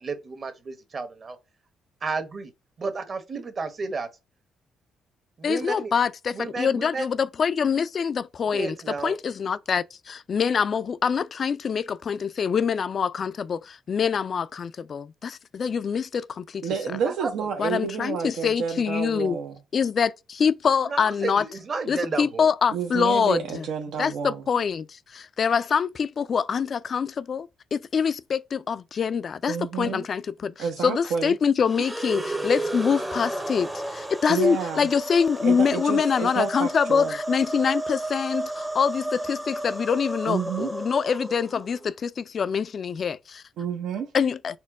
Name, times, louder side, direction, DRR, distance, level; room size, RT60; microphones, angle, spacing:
voice 1, 0.0-1.4 2.0-2.5 2.8-4.1 5.4-5.9 6.3-7.1 8.4-9.2 17.0-17.5 20.8-22.5 31.8-31.9, right 4 dB, 40° right, 1.0 m, -32 dB
voice 2, 5.4-8.7 9.0-16.7 17.6-19.4 19.7-21.4 21.9-23.7 24.0-43.4 44.1-44.6, left 6 dB, 50° left, 0.3 m, -25 dB
voice 3, 16.6-19.5 22.7-24.4 29.5-30.0 30.6-31.3 34.3-34.9 35.4-37.1 40.3-40.7 43.6-44.1, right 7 dB, 80° right, 0.7 m, -29 dB
sound 1, 31.6-41.9, right 1 dB, 10° right, 0.6 m, -32 dB
4.3 x 2.2 x 4.6 m
cardioid pair, 90°, 0 cm